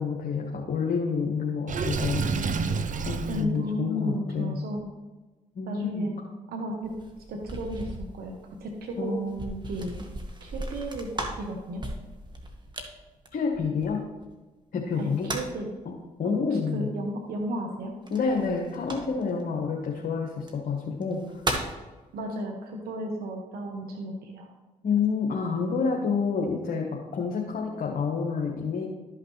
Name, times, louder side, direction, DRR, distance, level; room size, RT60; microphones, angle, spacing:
voice 1, 0.0-2.3 3.0-4.6 5.5-6.1 9.0-9.6 13.3-14.0 14.7-15.3 15.8-15.9 16.2-16.9 18.1-21.4 24.8-28.9, left 5 dB, 65° left, -1 dB, 1.4 m, -28 dB
Water / Sink (filling or washing), 1.7-3.4, right 5 dB, 55° right, 0.6 m, -28 dB
voice 2, 3.3-4.8 5.7-6.2 6.5-6.9 7.3-9.2 9.7-10.0 10.4-11.1 11.4-11.8 15.0-15.7 16.2-17.9 22.1-24.5, right 1 dB, 75° right, 2 dB, 1.1 m, -33 dB
sound 1, 6.8-14.2 14.9-15.7 18.1-19.4 20.3-20.5 21.0-21.8, right 1 dB, 30° right, 1.6 m, -37 dB
12.5 x 5.7 x 3.3 m, 1.2 s
supercardioid pair, 50°, 16 cm